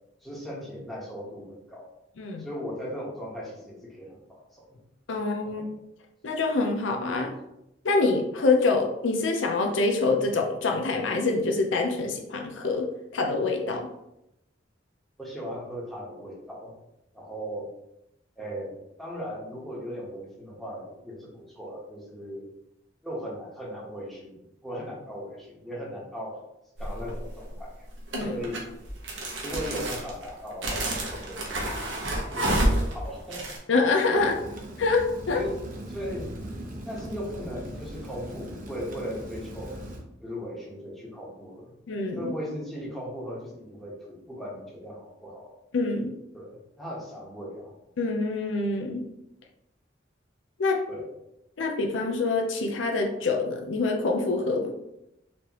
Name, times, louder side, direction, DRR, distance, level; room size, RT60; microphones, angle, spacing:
voice 1, 0.2-1.9 2.4-4.7 5.4-5.8 15.2-16.7 17.1-17.7 18.4-18.7 19.0-22.5 23.0-26.4 26.8-27.7 28.3-28.6 29.4-31.7 32.3-33.5 34.1-34.2 35.3-36.4 36.8-39.8 40.2-41.7 42.1-45.5 46.3-47.7 50.9-51.1, equal, ahead, -5 dB, 1.1 m, -38 dB
voice 2, 5.1-5.6 6.2-7.3 7.8-13.9 28.1-28.4 33.7-34.3 34.8-35.4 41.9-42.3 45.7-46.1 48.0-49.0 50.6-50.9 51.6-54.7, left 3 dB, 75° left, 2 dB, 0.6 m, -25 dB
sound 1, 26.8-27.2 28.1-33.6, right 1 dB, 80° right, 1.0 m, -29 dB
Rain, 34.1-40.0, right 1 dB, 45° right, 0.8 m, -40 dB
4.2 x 3.1 x 2.9 m, 0.84 s
head